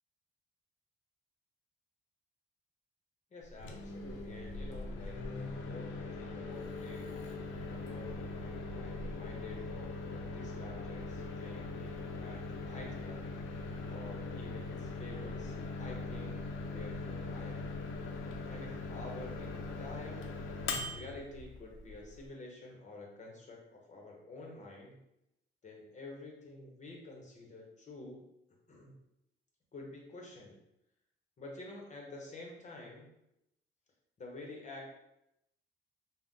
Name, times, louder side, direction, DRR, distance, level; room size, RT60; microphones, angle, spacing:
voice 1, 3.3-7.1 7.6-13.3 13.9-16.4 16.7-17.7 18.5-25.0 25.6-28.2 28.7-29.0 29.7-30.6 31.4-33.1 34.2-34.9, left 2 dB, 35° left, -1 dB, 0.7 m, -49 dB
Microwave oven, 3.5-22.3, left 3 dB, 85° left, 0.5 m, -41 dB
2.5 x 2.0 x 3.6 m, 0.84 s
cardioid pair, 90°, 20 cm